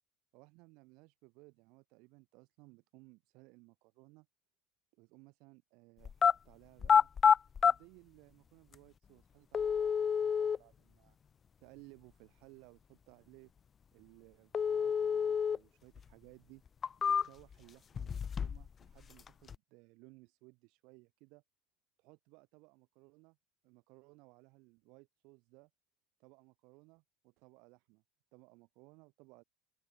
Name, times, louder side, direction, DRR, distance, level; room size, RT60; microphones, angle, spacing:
voice 1, 0.3-4.3 4.9-7.1 7.6-11.2 11.6-13.5 13.9-16.6 17.1-21.4 22.0-23.4 23.6-25.7 26.2-28.0 28.3-29.4, right 26 dB, 60° right, 4.8 m, -60 dB
sound 1, 6.0-6.3 6.8-7.7 8.7-8.8 9.5-10.6 14.5-15.6 16.0-16.1 16.7-17.5 17.9-18.7 19.0-19.5, left 7 dB, 25° left, 0.3 m, -28 dB
open air
cardioid pair, 160°, 0 cm